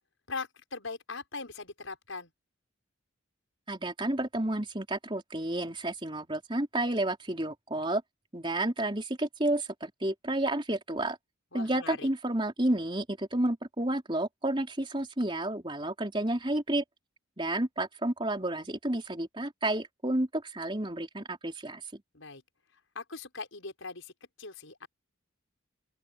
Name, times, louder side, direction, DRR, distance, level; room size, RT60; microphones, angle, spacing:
voice 1, 0.3-2.3 11.5-12.1 22.1-22.4 22.9-24.1 24.4-24.9, left 4 dB, 75° left, 5.6 m, -40 dB
voice 2, 3.7-8.0 8.3-11.2 11.5-16.8 17.4-22.0, right 1 dB, 25° right, 4.0 m, -31 dB
open air
head